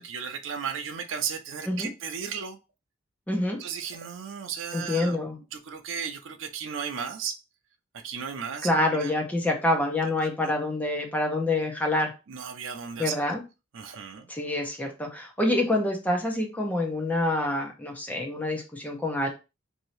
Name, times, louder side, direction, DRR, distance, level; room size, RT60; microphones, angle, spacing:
voice 1, 0.0-2.6 3.6-5.2 5.5-7.4 8.0-9.1 10.2-10.3 12.3-13.1 13.7-14.3, right 7 dB, 80° right, 0.5 m, -35 dB
voice 2, 3.3-3.6 4.7-5.4 8.6-12.1 13.0-13.4 14.3-19.3, left 1 dB, 10° left, 0.7 m, -27 dB
2.7 x 2.7 x 3.1 m
head